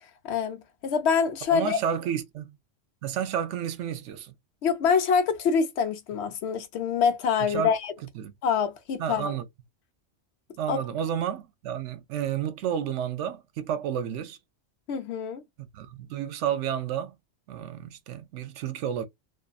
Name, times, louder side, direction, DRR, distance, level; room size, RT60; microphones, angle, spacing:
voice 1, 0.2-1.8 4.6-7.9 8.4-9.3 10.7-10.8 14.9-15.4, left 6 dB, 65° left, 0.8 m, -25 dB
voice 2, 1.5-2.5 3.0-4.3 7.4-7.7 8.1-8.3 9.0-9.5 10.6-14.4 15.6-17.2 17.5-19.0, right 9 dB, 75° right, 0.9 m, -31 dB
2.5 x 2.5 x 2.3 m
omnidirectional pair, 1.3 m